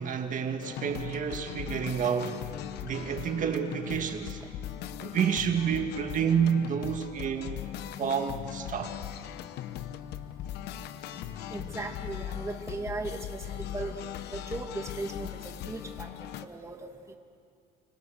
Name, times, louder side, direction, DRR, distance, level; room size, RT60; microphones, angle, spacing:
voice 1, 0.0-2.4 2.8-4.4 5.0-7.6 8.0-9.0, right 7 dB, 50° right, 5 dB, 1.9 m, -29 dB
sound 1, 0.6-16.5, left 11 dB, 80° left, 1.1 m, -39 dB
voice 2, 11.5-13.9 14.3-16.1 16.4-16.8, right 3 dB, 15° right, 4 dB, 2.1 m, -37 dB
30.0 x 25.5 x 6.5 m, 2.3 s
cardioid pair, 110°, 17 cm